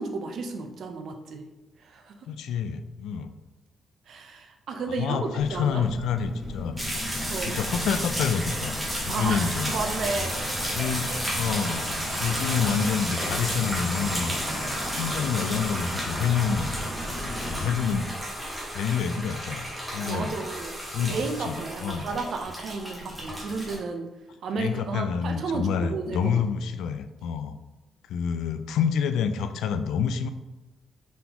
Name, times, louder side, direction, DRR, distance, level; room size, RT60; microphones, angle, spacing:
voice 1, 0.0-1.4 1.9-2.1 4.1-5.8 7.3-7.6 9.1-10.3 20.1-20.7 21.0-24.1 24.4-26.2, right 4 dB, 55° right, 4 dB, 0.5 m, -32 dB
voice 2, 2.3-3.3 5.0-6.7 7.5-8.8 9.1-9.7 10.7-11.1 11.4-11.9 12.2-14.4 14.9-16.7 17.4-18.1 18.7-19.7 19.9-20.3 20.9-22.2 24.6-27.6 28.1-30.3, left 7 dB, 85° left, 10 dB, 0.3 m, -28 dB
Car, 5.4-18.0, left 1 dB, 15° left, 1.0 m, -37 dB
sound 1, 6.8-23.8, equal, 5° right, 0.9 m, -32 dB
4.0 x 3.7 x 2.8 m, 1.0 s
cardioid pair, 160°, 0 cm